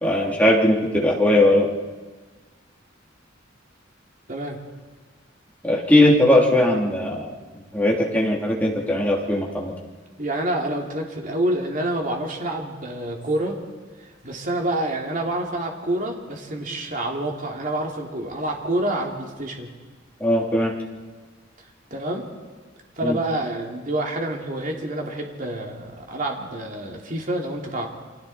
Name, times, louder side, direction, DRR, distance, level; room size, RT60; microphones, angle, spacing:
voice 1, 0.0-1.7 5.6-7.3 7.7-9.7 20.2-20.7 23.0-23.2, left 1 dB, 10° left, -3 dB, 3.3 m, -19 dB
voice 2, 4.3-4.6 10.2-13.6 14.0-19.7 21.6-22.3 23.0-27.9, right 1 dB, 45° right, 1 dB, 3.0 m, -27 dB
29.5 x 24.5 x 4.4 m, 1.4 s
head